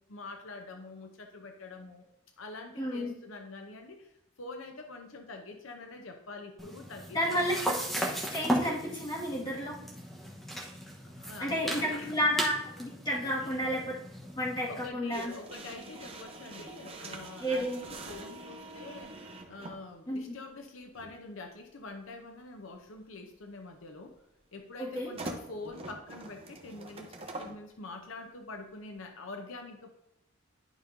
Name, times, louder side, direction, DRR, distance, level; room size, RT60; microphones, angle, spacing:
voice 1, 0.1-2.1 2.4-4.1 4.4-7.7 11.0-12.4 13.4-13.7 14.7-19.2 19.5-24.1 24.5-29.9, left 3 dB, 80° left, 5 dB, 0.8 m, -45 dB
voice 2, 2.8-3.2 7.1-7.5 8.3-9.8 11.4-14.0 14.4-15.3 17.4-17.8 20.1-20.3 24.8-25.1, equal, 20° left, -5 dB, 1.9 m, -31 dB
sound 1, 6.6-14.9, right 1 dB, ahead, 1.1 m, -36 dB
sound 2, 15.1-19.8 20.9-21.1 25.0-27.6, right 2 dB, 30° right, 0.8 m, -44 dB
11.0 x 5.2 x 2.7 m, 0.85 s
head